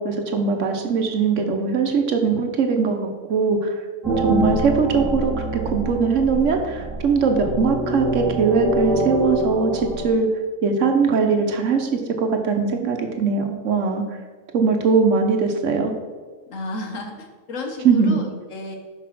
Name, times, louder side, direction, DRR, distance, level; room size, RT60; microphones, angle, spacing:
voice 1, 0.0-10.3 10.6-14.0 14.5-15.9 17.8-18.2, right 5 dB, 70° right, 5 dB, 1.1 m, -21 dB
sound 1, 4.0-10.1, right 1 dB, 15° right, 2.3 m, -25 dB
voice 2, 16.5-18.7, left 2 dB, 75° left, 3 dB, 1.5 m, -32 dB
6.1 x 5.3 x 5.8 m, 1.4 s
omnidirectional pair, 1.4 m